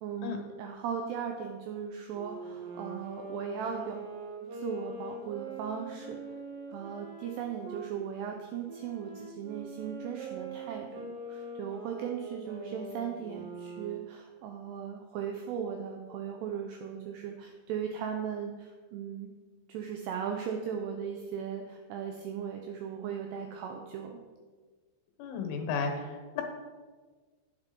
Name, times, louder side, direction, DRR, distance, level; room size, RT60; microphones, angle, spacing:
voice 1, 0.0-4.0 4.5-6.2 6.7-19.3 19.7-24.2, right 7 dB, 80° right, 3 dB, 2.5 m, -37 dB
Wind instrument woodwind instrument, 2.1-7.9 8.7-14.1, right 3 dB, 65° right, 2.4 m, -43 dB
voice 2, 25.2-26.4, left 5 dB, 85° left, 4 dB, 3.9 m, -33 dB
9.6 x 7.4 x 5.2 m, 1.4 s
omnidirectional pair, 5.6 m